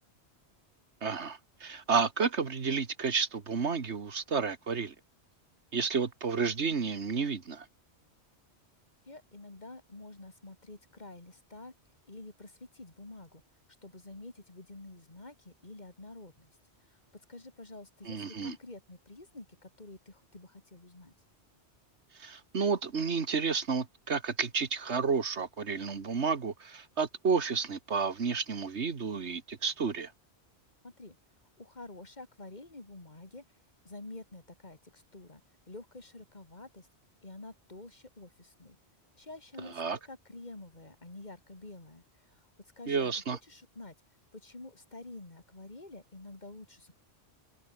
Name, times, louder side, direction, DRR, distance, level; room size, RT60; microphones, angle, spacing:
voice 1, 1.0-4.9 5.7-7.7 18.1-18.5 22.2-30.1 39.8-40.0 42.9-43.4, right 5 dB, 85° right, 2.0 m, -31 dB
voice 2, 9.1-11.7 12.1-13.4 13.8-16.5 16.9-21.1 30.8-31.2 31.6-33.4 33.8-35.4 35.7-36.9 37.2-38.8 39.2-42.5 42.8-43.9 44.3-46.9, left 2 dB, 40° left, 3.1 m, -48 dB
omnidirectional pair, 1.1 m